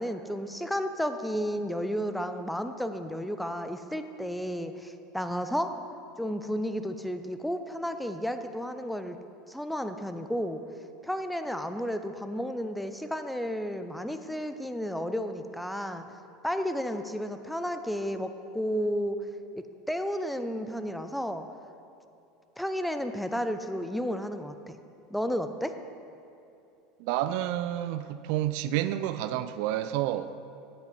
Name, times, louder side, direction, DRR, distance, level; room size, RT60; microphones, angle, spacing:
voice 1, 0.0-5.7 6.2-9.2 9.5-10.6 11.0-16.1 16.4-19.2 19.5-21.5 22.6-24.8 25.1-25.7, equal, 5° left, 8 dB, 0.6 m, -32 dB
voice 2, 27.0-30.3, right 13 dB, 65° right, 12 dB, 0.3 m, -29 dB
8.7 x 8.2 x 5.3 m, 2.7 s
hypercardioid pair, 85°, 0 cm